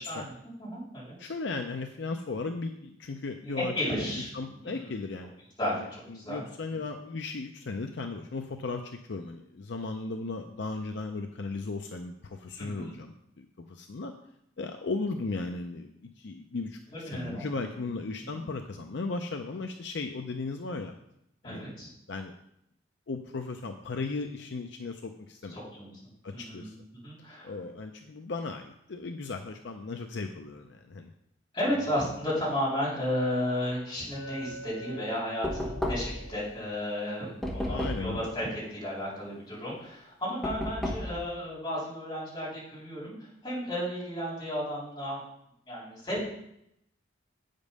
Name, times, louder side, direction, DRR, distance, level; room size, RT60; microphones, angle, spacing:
voice 1, 0.0-1.3 3.4-5.0 5.6-6.4 6.8-6.9 12.6-12.9 17.1-17.6 18.3-18.4 21.4-21.9 25.5-25.9 26.3-26.7 27.0-27.5 31.5-45.2 45.7-46.3, equal, 25° left, -7 dB, 3.6 m, -33 dB
voice 2, 1.2-4.0 4.3-5.3 5.7-14.1 14.6-20.9 21.4-21.6 22.1-22.3 23.1-25.6 26.2-26.7 27.4-31.1 37.7-38.3, left 3 dB, 65° left, 5 dB, 0.5 m, -36 dB
Chink clink, 34.1-38.3, right 1 dB, 25° right, 1.4 m, -47 dB
Knock, 35.4-36.3 37.4-38.2 40.4-41.2, left 1 dB, ahead, 1.2 m, -32 dB
8.3 x 5.2 x 5.3 m, 0.77 s
head